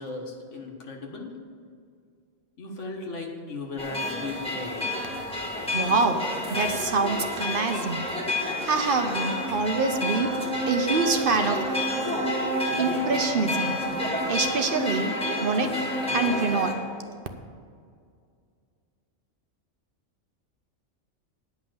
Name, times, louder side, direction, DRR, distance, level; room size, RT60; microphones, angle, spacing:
voice 1, 0.0-1.3 2.6-4.9, left 3 dB, 80° left, 1 dB, 1.7 m, -36 dB
sound 1, 3.8-16.7, left 1 dB, 5° left, 1.3 m, -29 dB
voice 2, 5.6-11.7 12.7-13.7 14.0-15.1 15.4-15.7 16.1-16.7, right 4 dB, 50° right, 6 dB, 0.8 m, -26 dB
10.0 x 5.6 x 7.8 m, 2.2 s
omnidirectional pair, 1.2 m